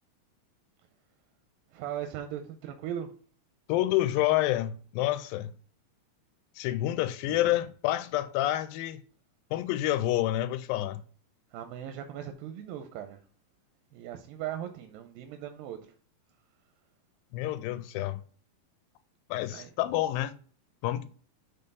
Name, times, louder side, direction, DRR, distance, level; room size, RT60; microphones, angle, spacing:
voice 1, 1.7-3.1 7.3-7.4 11.5-13.2 13.9-15.8 19.5-19.7, right 10 dB, 90° right, 2.4 m, -38 dB
voice 2, 3.7-5.5 6.6-9.0 9.5-11.0 17.3-18.2 19.3-20.4 20.8-21.1, left 14 dB, 85° left, 2.3 m, -28 dB
6.7 x 3.6 x 5.4 m
omnidirectional pair, 4.1 m